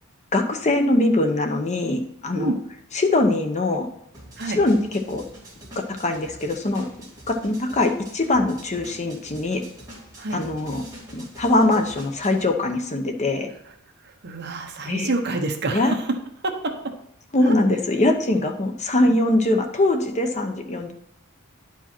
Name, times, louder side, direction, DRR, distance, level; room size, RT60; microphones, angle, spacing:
voice 1, 0.3-2.5 2.9-3.9 4.4-5.2 5.9-6.9 7.3-9.6 10.3-10.8 11.1-13.5 14.9-15.1 15.7-15.9 17.3-20.9, left 2 dB, 30° left, 5 dB, 0.8 m, -22 dB
sound 1, 4.1-12.5, right 1 dB, 15° right, 2.5 m, -44 dB
voice 2, 14.0-16.0 16.4-16.7, right 2 dB, 50° right, 4 dB, 1.0 m, -27 dB
10.5 x 4.8 x 4.4 m, 0.75 s
head